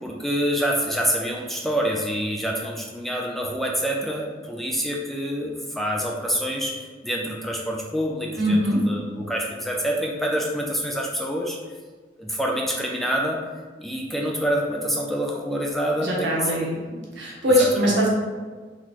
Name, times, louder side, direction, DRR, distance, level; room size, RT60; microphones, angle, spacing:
voice 1, 0.0-11.6 12.2-13.4 13.8-16.7 17.6-17.9, equal, ahead, -1 dB, 0.3 m, -26 dB
voice 2, 8.4-8.8 16.0-16.8 17.2-18.1, equal, 75° right, -4 dB, 1.1 m, -21 dB
4.0 x 3.1 x 2.8 m, 1.4 s
head